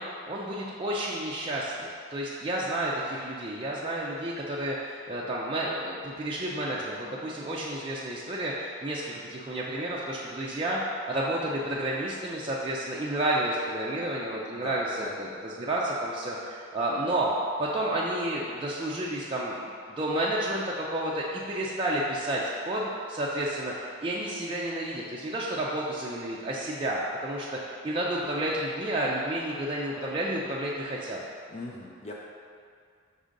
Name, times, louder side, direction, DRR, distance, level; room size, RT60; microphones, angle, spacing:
voice 1, 0.0-1.7 2.1-10.8 11.1-14.9 15.2-17.3 17.6-31.2, right 1 dB, 25° right, -5 dB, 0.4 m, -31 dB
voice 2, 14.5-15.1 31.5-32.1, left 2 dB, 30° left, -3 dB, 0.4 m, -39 dB
5.5 x 3.8 x 5.1 m, 2.2 s
head